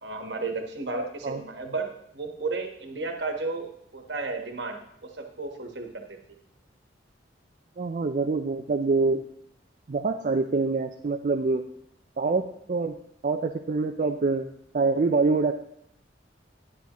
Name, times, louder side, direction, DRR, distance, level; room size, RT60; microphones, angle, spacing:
voice 1, 0.0-6.2, right 3 dB, 65° right, 4 dB, 1.3 m, -33 dB
voice 2, 7.8-9.2 9.9-11.6 12.2-12.9 13.2-15.5, right 3 dB, 45° right, 5 dB, 0.4 m, -25 dB
10.5 x 9.5 x 3.0 m, 0.70 s
head